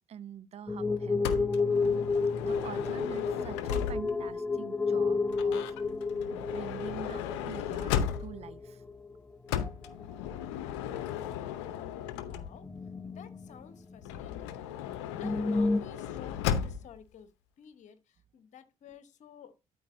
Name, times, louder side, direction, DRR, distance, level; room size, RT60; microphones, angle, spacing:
voice 1, 0.1-1.5 2.4-5.7 6.3-8.0 8.2-8.8, right 9 dB, 50° right, 0.6 m, -45 dB
sound 1, 0.7-9.2 9.5-10.0 10.4-10.5 11.0-11.1 12.1-14.2 14.5-14.6 14.9-15.8, left 4 dB, 10° left, 0.6 m, -31 dB
Motor vehicle (road) / Sliding door, 1.2-4.3 5.3-8.5 9.5-12.8 14.0-17.0, left 9 dB, 80° left, 0.7 m, -36 dB
voice 2, 12.2-12.7 13.0-14.6 15.2-17.3 17.6-19.5, left 8 dB, 60° left, 1.2 m, -52 dB
12.5 x 4.5 x 2.6 m
hypercardioid pair, 50°, 14 cm